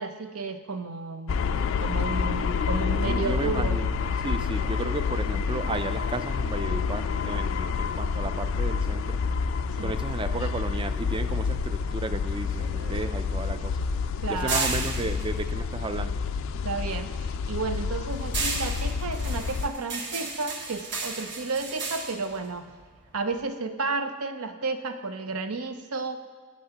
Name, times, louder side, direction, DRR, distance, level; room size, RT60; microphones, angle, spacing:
voice 1, 0.0-3.8 9.8-10.0 14.2-14.9 16.6-17.1 17.5-22.7 23.1-26.2, right 4 dB, 75° right, 8 dB, 0.7 m, -32 dB
sound 1, 1.3-19.7, left 5 dB, 60° left, 0.3 m, -28 dB
voice 2, 3.0-3.9 4.2-9.2 9.8-13.9 14.3-16.2, right 3 dB, 20° right, 10 dB, 0.3 m, -33 dB
sound 2, 12.1-16.6 17.0-23.4, right 3 dB, 55° right, 1.2 m, -35 dB
14.0 x 8.8 x 2.9 m, 1.5 s
head